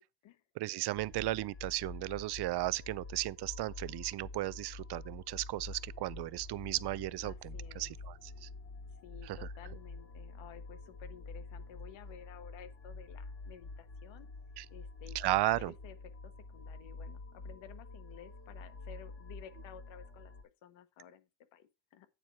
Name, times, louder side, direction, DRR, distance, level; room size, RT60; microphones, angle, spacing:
voice 1, 0.6-8.5 9.3-9.4 14.6-14.7 15.1-15.7, right 17 dB, 60° right, 0.5 m, -35 dB
sound 1, 0.9-20.4, left 3 dB, 40° left, 3.4 m, -47 dB
voice 2, 7.2-7.9 9.0-14.3 14.7-16.0 16.2-20.3 20.6-22.1, left 9 dB, 90° left, 1.3 m, -54 dB
9.0 x 4.6 x 5.5 m
cardioid pair, 125°, 44 cm